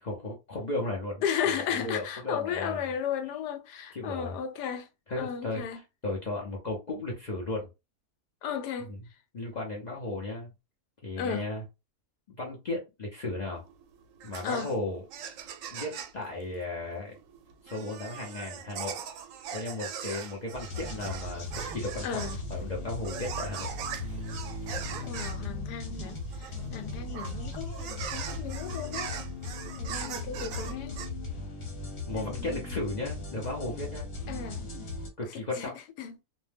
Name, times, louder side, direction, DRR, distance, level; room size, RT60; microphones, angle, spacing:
voice 1, 0.0-2.8 3.9-4.4 5.1-7.7 9.3-10.5 11.0-11.6 12.3-13.7 14.2-15.0 15.7-17.2 17.6-19.0 19.5-21.4 21.7-22.2 22.5-23.7 32.1-34.1 35.2-35.7, left 2 dB, 70° left, 0.4 m, -35 dB
voice 2, 1.2-4.9 5.2-5.8 8.4-8.9 11.2-11.5 14.4-14.7 22.0-22.4 24.8-29.2 29.8-31.0 32.1-32.8 34.3-34.7 35.5-35.7 36.0-36.2, left 8 dB, 85° left, 1.2 m, -35 dB
sound 1, 13.6-31.1, right 8 dB, 70° right, 0.8 m, -41 dB
sound 2, 20.5-35.1, left 2 dB, 40° left, 1.1 m, -38 dB
Loud dog bark, 21.0-22.2 22.6-22.7 23.0-23.3 23.6-23.8 24.1-24.3 24.8-25.4 26.3-28.4, right 6 dB, 85° right, 1.1 m, -48 dB
2.6 x 2.1 x 3.3 m
omnidirectional pair, 1.7 m